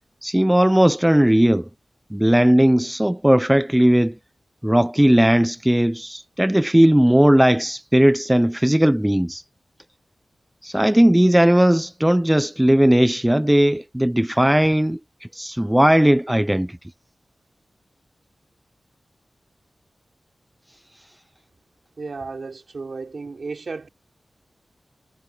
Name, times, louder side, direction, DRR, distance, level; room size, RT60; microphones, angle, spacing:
voice 1, 0.2-1.6 2.1-4.1 4.6-9.4 10.6-15.0 15.3-16.8, right 1 dB, 5° right, 0.3 m, -17 dB
voice 2, 22.0-23.9, right 4 dB, 55° right, 3.2 m, -33 dB
wide cardioid pair, 120°, 0 cm